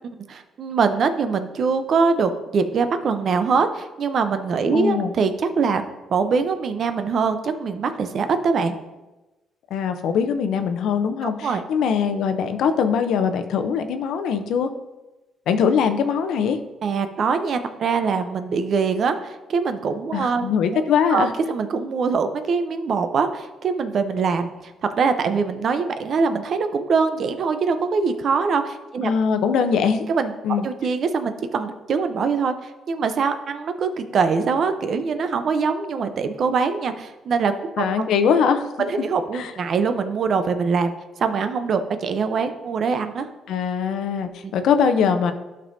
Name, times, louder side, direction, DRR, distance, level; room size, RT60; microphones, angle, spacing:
voice 1, 0.3-5.8 6.1-8.8 11.2-11.6 16.8-20.5 20.7-20.8 21.1-24.7 25.0-29.1 30.1-30.3 30.6-37.9 38.8-40.9 41.2-43.3 44.4-44.5, right 5 dB, 60° right, 9 dB, 0.7 m, -23 dB
voice 2, 4.7-5.1 9.7-14.7 15.5-16.6 20.1-21.3 29.0-30.1 30.4-30.7 37.8-38.9 39.3-39.5 43.5-45.3, left 6 dB, 80° left, 8 dB, 0.6 m, -22 dB
12.0 x 5.4 x 2.7 m, 1.1 s
cardioid pair, 90°, 0 cm